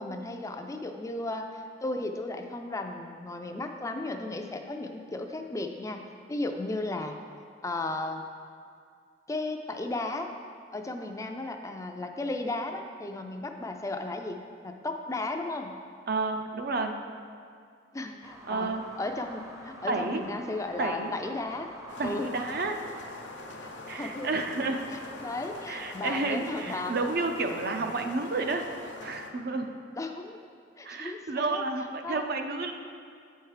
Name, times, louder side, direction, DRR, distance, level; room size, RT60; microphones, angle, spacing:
voice 1, 0.0-6.0 6.3-7.2 7.6-8.2 9.3-10.3 10.7-15.8 17.9-21.7 22.0-22.3 23.6-24.3 25.2-27.0 30.0-30.5 30.8-31.6 32.0-32.3, left 2 dB, 15° left, 5 dB, 0.4 m, -35 dB
voice 2, 16.1-16.9 18.5-18.8 19.9-20.2 20.8-21.1 22.0-22.8 23.9-24.9 25.7-29.7 30.8-32.7, right 3 dB, 55° right, 5 dB, 0.6 m, -31 dB
sound 1, 18.2-26.6, right 1 dB, 15° right, 0.6 m, -49 dB
sound 2, 21.9-29.3, left 2 dB, 80° left, 0.7 m, -43 dB
7.9 x 4.5 x 4.8 m, 2.3 s
head